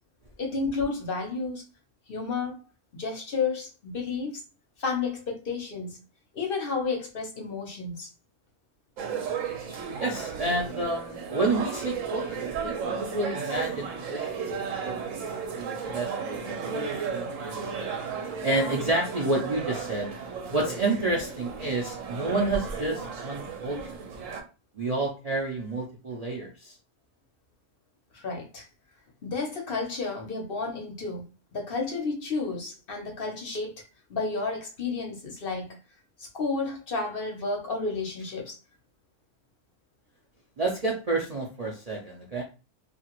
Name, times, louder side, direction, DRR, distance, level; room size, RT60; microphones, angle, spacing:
voice 1, 0.4-1.6 2.1-2.6 2.9-4.4 4.8-6.0 6.3-8.1 28.1-28.7 29.2-31.2 31.5-33.8 34.1-35.8 36.2-38.6, left 4 dB, 55° left, 0.8 m, -31 dB
sound 1, 9.0-24.4, right 6 dB, 85° right, 1.0 m, -34 dB
voice 2, 10.0-14.5 14.8-15.1 15.6-17.9 18.4-20.1 20.5-23.9 24.7-26.8 40.6-42.4, right 2 dB, 45° right, 0.5 m, -30 dB
2.8 x 2.5 x 2.9 m
omnidirectional pair, 1.3 m